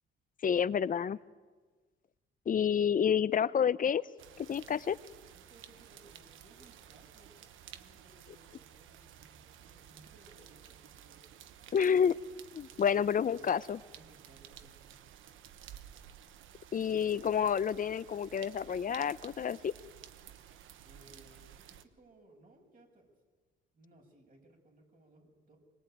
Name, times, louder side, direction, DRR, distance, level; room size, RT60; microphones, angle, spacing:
voice 1, 0.4-1.2 2.5-4.0 4.4-5.0 11.7-12.2 12.5-13.8 16.7-19.7, left 7 dB, 45° left, 17 dB, 0.8 m, -29 dB
sound 1, 4.2-21.9, right 10 dB, 80° right, 1.2 m, -54 dB
voice 2, 5.3-7.3 7.7-11.2 12.7-13.6 13.9-15.1 20.8-23.1 23.7-25.6, right 1 dB, 45° right, 2 dB, 7.3 m, -62 dB
24.5 x 21.5 x 9.3 m, 1.4 s
cardioid pair, 90°, 20 cm